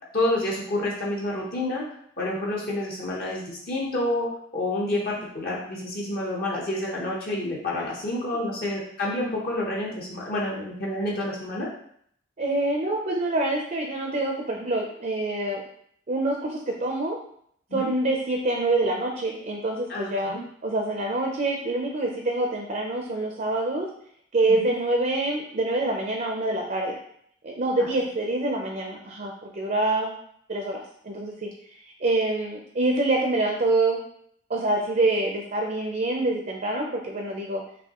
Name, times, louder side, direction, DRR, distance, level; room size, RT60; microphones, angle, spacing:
voice 1, 0.1-1.8 2.2-4.3 4.5-11.7 17.7-17.9 19.9-20.4 24.5-24.7 27.8-27.9, left 1 dB, 50° left, -4 dB, 1.0 m, -28 dB
voice 2, 12.4-15.6 16.1-17.2 17.7-23.9 24.3-27.0 27.4-30.1 30.5-31.5 32.0-34.0 34.5-37.6, right 2 dB, 45° right, 1 dB, 0.5 m, -26 dB
5.4 x 2.7 x 2.9 m, 0.67 s
head